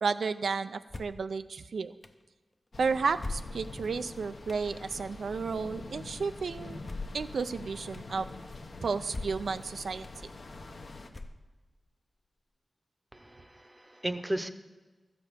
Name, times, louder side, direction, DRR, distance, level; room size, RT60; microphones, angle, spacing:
voice 1, 0.0-1.9 2.8-6.8 7.1-8.3 8.8-10.1, right 5 dB, 85° right, 10 dB, 0.3 m, -32 dB
sound 1, 0.9-1.3 2.0-2.1 3.2-3.9 4.5-4.6 6.8-7.3 7.9-8.0 9.1-9.6 10.0-10.1 11.1-11.7, left 2 dB, 35° left, 0.6 m, -40 dB
sound 2, 2.7-11.1, left 3 dB, 65° left, 0.9 m, -45 dB
voice 2, 13.1-14.5, right 1 dB, 15° right, 9 dB, 0.7 m, -35 dB
13.0 x 5.1 x 8.0 m, 1.3 s
wide cardioid pair, 75°, 0 cm